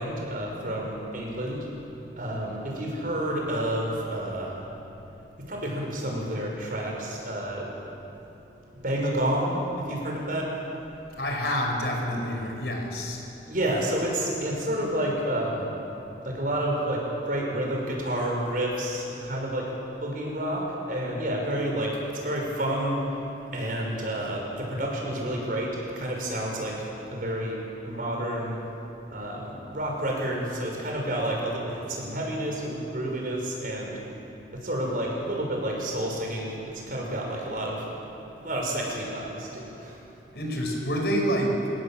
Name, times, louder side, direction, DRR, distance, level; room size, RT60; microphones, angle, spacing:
voice 1, 0.0-1.7 2.2-4.7 5.5-7.7 8.8-10.5 13.5-15.7 16.2-19.7 20.0-22.0 22.2-23.2 23.5-27.6 27.8-28.6 29.1-34.0 34.6-36.6 36.9-37.9 38.4-40.0, right 1 dB, 50° right, -1 dB, 6.2 m, -29 dB
voice 2, 11.2-13.2 40.3-41.7, equal, 65° left, 1 dB, 5.3 m, -27 dB
30.0 x 17.0 x 7.7 m, 2.9 s
head